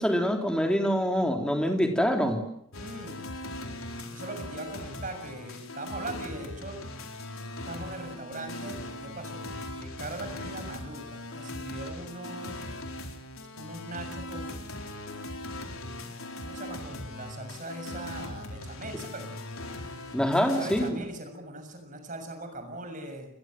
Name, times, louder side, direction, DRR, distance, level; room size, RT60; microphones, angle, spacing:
voice 1, 0.0-2.5 20.1-21.0, equal, 5° left, 3 dB, 3.6 m, -25 dB
sound 1, 2.7-20.9, left 1 dB, 85° left, 4.2 m, -40 dB
voice 2, 2.8-3.2 4.1-6.8 7.6-9.5 9.8-12.6 13.5-14.7 16.4-19.3 20.2-23.3, right 2 dB, 40° right, 6 dB, 6.8 m, -40 dB
29.0 x 22.0 x 7.8 m, 0.74 s
head